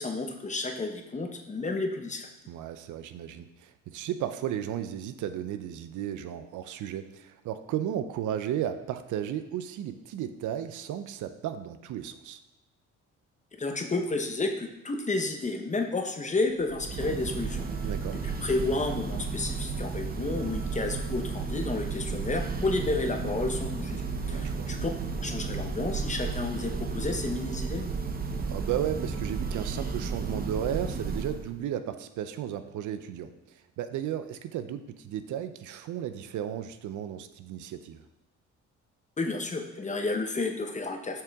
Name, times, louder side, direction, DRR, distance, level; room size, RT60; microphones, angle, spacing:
voice 1, 0.0-2.3 13.6-17.7 18.2-24.9 25.2-27.8 39.2-41.2, left 3 dB, 25° left, 4 dB, 0.9 m, -31 dB
voice 2, 2.5-12.4 16.9-17.2 17.8-18.2 24.2-24.7 28.5-38.0, right 10 dB, 80° right, 10 dB, 0.6 m, -34 dB
Church bell, 16.6-31.6, right 4 dB, 30° right, 0.7 m, -33 dB
6.7 x 5.8 x 3.5 m, 0.97 s
cardioid pair, 90°, 30 cm